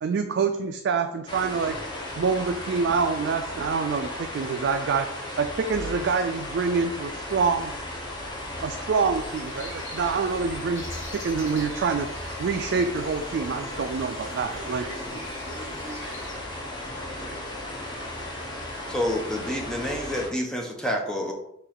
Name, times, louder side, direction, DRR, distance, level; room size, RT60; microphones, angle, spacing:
voice 1, 0.0-1.8 2.2-5.1 5.4-7.7 8.6-10.8 11.2-12.1 12.4-14.8, right 5 dB, 60° right, 6 dB, 0.3 m, -26 dB
sound 1, 1.3-20.3, left 1 dB, 25° left, 0.9 m, -35 dB
sound 2, 9.2-16.3, left 2 dB, 75° left, 1.5 m, -45 dB
voice 2, 14.5-16.5 17.0-17.6, right 2 dB, 80° right, 3 dB, 1.0 m, -44 dB
voice 3, 18.9-21.3, left 1 dB, 5° left, 0 dB, 0.6 m, -28 dB
4.5 x 2.9 x 3.9 m, 0.76 s
head